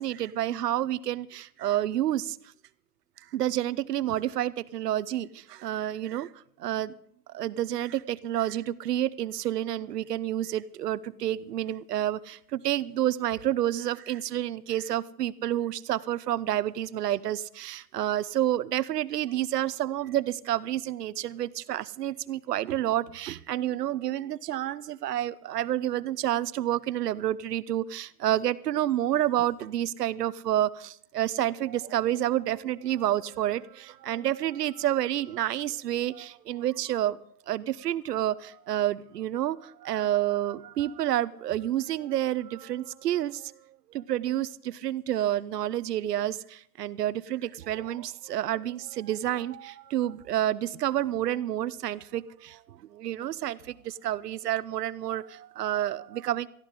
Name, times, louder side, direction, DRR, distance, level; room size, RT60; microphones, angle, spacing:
voice 1, 0.0-2.4 3.3-6.3 6.6-6.9 7.3-37.2 37.5-43.5 43.9-56.5, right 12 dB, 80° right, 17 dB, 0.9 m, -29 dB
19.0 x 14.5 x 3.8 m, 0.65 s
hypercardioid pair, 125°, 47 cm